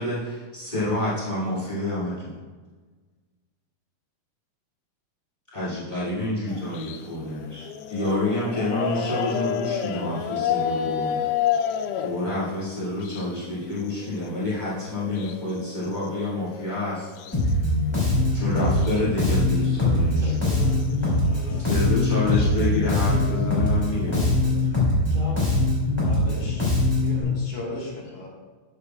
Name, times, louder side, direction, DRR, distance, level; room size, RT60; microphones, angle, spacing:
voice 1, 0.0-2.4 5.5-11.2 12.0-17.1 18.3-20.6 21.6-24.3, left 1 dB, 40° left, -8 dB, 0.6 m, -28 dB
sound 1, 6.5-13.5 13.9-17.5 17.9-18.0 18.3-19.0 19.3-24.7, left 9 dB, 90° left, 1.8 m, -32 dB
Bass guitar, 17.3-27.2, left 2 dB, 10° left, 2.2 m, -22 dB
voice 2, 20.2-21.8 24.0-24.3 24.6-24.8 25.1-25.6, equal, 50° right, -4 dB, 2.9 m, -41 dB
voice 3, 26.0-26.7 27.0-28.3, left 2 dB, 60° left, -3 dB, 2.7 m, -36 dB
12.5 x 8.0 x 2.3 m, 1.4 s
omnidirectional pair, 4.2 m